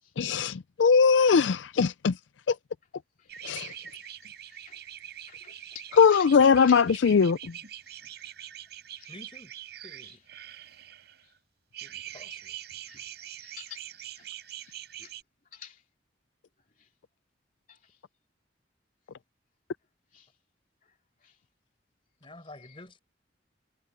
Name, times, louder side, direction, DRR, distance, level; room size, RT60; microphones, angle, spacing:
voice 1, 0.2-2.2 2.5-2.6 3.4-3.7 6.0-7.5, left 6 dB, 80° left, 0.4 m, -21 dB
voice 2, 3.2-4.0 4.4-4.9 5.3-6.3 6.6-6.8 7.8-8.1 8.9-9.1 10.1-10.2 11.2-11.3 12.9-13.1 13.4-13.8 14.2-14.3 14.5-15.1 15.5-15.8 16.8-16.9 17.7-18.0 20.1-20.3 20.8-21.4 22.6-22.8, left 9 dB, 45° left, 2.7 m, -51 dB
sound 1, 3.3-11.3 11.7-15.2, right 11 dB, 60° right, 7.2 m, -44 dB
voice 3, 9.1-9.5 9.8-10.2 11.8-12.6 22.2-23.0, left 1 dB, 30° left, 6.7 m, -49 dB
head